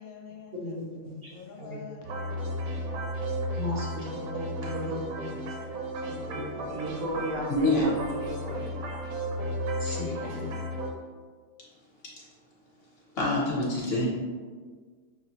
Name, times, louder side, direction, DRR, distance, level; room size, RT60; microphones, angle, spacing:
voice 1, 0.0-0.8 1.3-3.1 4.1-4.3, left 6 dB, 75° left, 1 dB, 1.0 m, -47 dB
voice 2, 0.6-1.8 3.5-5.5 6.1-7.0 9.8-10.5, equal, 55° right, -4 dB, 0.7 m, -37 dB
sound 1, 2.0-10.9, equal, 70° right, 1.1 m, -34 dB
voice 3, 6.7-9.1 9.9-10.4, equal, 90° right, -2 dB, 1.5 m, -35 dB
voice 4, 7.5-7.9 12.2-12.3 13.1-14.1, left 2 dB, 50° left, -5 dB, 0.9 m, -26 dB
6.1 x 2.1 x 2.9 m, 1.5 s
omnidirectional pair, 1.6 m